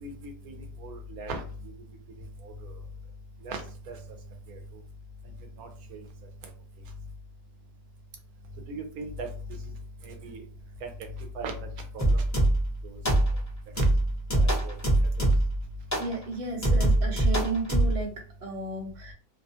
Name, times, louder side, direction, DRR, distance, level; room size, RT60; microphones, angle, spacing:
voice 1, 0.0-0.5 0.8-1.4 2.4-2.7 3.4-4.0 4.5-4.6 5.6-6.0 8.7-9.3 10.0-10.4 10.8-10.9 11.3-11.7 11.9-12.2 12.8-13.0 13.8-13.9 14.3-14.8 15.2-15.3, right 2 dB, 90° right, 5 dB, 1.1 m, -38 dB
sound 1, 12.0-12.7 13.1-13.5 13.8-15.6 15.9-16.1 16.6-18.0, right 1 dB, 25° left, 0.3 m, -23 dB
voice 2, 16.0-18.1 18.4-19.1, right 3 dB, 55° right, 1 dB, 1.0 m, -33 dB
2.7 x 2.2 x 2.6 m, 0.40 s
omnidirectional pair, 1.5 m